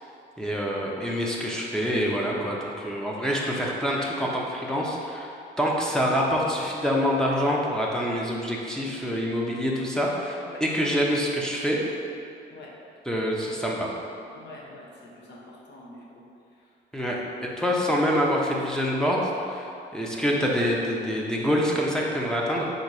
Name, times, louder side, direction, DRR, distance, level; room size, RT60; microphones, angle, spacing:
voice 1, 0.4-11.8 13.1-13.9 16.9-22.6, equal, 5° left, -4 dB, 0.7 m, -26 dB
voice 2, 14.3-16.2 16.6-17.1, left 2 dB, 60° left, -4 dB, 1.0 m, -46 dB
3.9 x 2.8 x 4.7 m, 2.5 s
cardioid pair, 90°, 20 cm